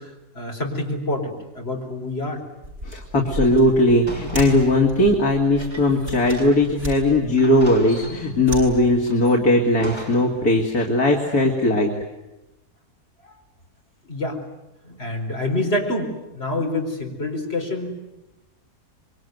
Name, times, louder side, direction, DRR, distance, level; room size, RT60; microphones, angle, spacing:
voice 1, 0.0-2.4 14.0-14.4 14.8-17.9, left 2 dB, 40° left, 1 dB, 4.9 m, -27 dB
sound 1, 2.6-9.3, equal, 50° right, 8.0 m, -35 dB
voice 2, 2.8-11.9, left 1 dB, 75° left, 1 dB, 3.2 m, -18 dB
sound 2, 4.1-6.8 7.1-7.2 7.4-8.5 9.1-10.4, equal, 15° left, 6.3 m, -40 dB
26.0 x 23.5 x 9.5 m, 0.97 s
omnidirectional pair, 1.6 m